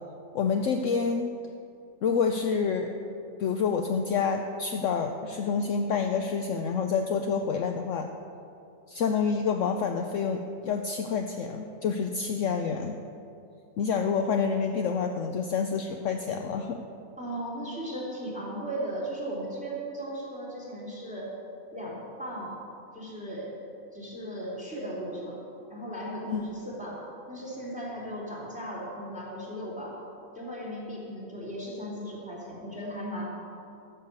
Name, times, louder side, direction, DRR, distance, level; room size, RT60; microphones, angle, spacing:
voice 1, 0.3-1.3 2.0-2.9 3.4-8.1 8.9-13.0 13.8-16.8 26.3-26.6, left 5 dB, 65° left, 5 dB, 0.9 m, -28 dB
voice 2, 17.2-21.3 21.7-22.6 22.9-23.5 23.9-25.4 25.7-27.0 27.3-29.9 30.3-33.3, right 1 dB, 5° right, -5 dB, 3.1 m, -36 dB
13.0 x 7.4 x 6.8 m, 2.6 s
omnidirectional pair, 1.6 m